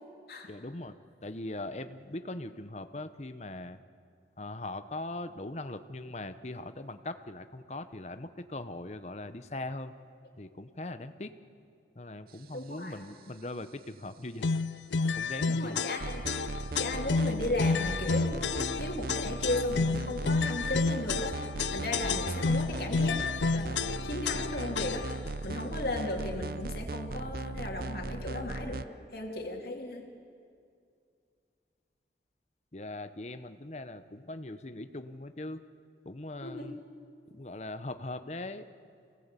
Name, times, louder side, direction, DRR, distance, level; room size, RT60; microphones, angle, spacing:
voice 1, 0.5-0.9 1.2-3.8 4.4-9.9 10.4-11.3 11.9-14.6 15.1-15.8 32.7-35.6 36.0-36.8 37.3-38.6, left 2 dB, 40° left, 10 dB, 0.9 m, -40 dB
voice 2, 12.5-13.0 15.5-16.4 16.8-23.3 23.5-30.1 36.4-36.7, left 2 dB, 55° left, 1 dB, 2.9 m, -36 dB
sound 1, 14.4-25.3, left 4 dB, 90° left, 0.5 m, -30 dB
sound 2, 16.0-28.8, right 3 dB, 55° right, 0.6 m, -37 dB
26.0 x 18.0 x 8.4 m, 2.3 s
head